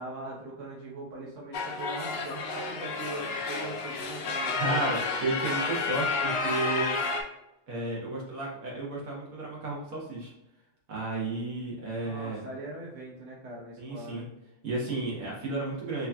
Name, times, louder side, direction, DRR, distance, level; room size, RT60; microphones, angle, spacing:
voice 1, 0.0-4.8 12.0-14.3, right 2 dB, 65° right, -5 dB, 1.3 m, -41 dB
sound 1, 1.5-7.2, left 4 dB, 60° left, 0.7 m, -31 dB
voice 2, 4.6-6.9 7.7-10.3 10.9-12.4 13.8-14.3 14.6-16.1, right 2 dB, 85° right, -4 dB, 1.6 m, -32 dB
5.1 x 2.7 x 2.3 m, 0.92 s
omnidirectional pair, 1.4 m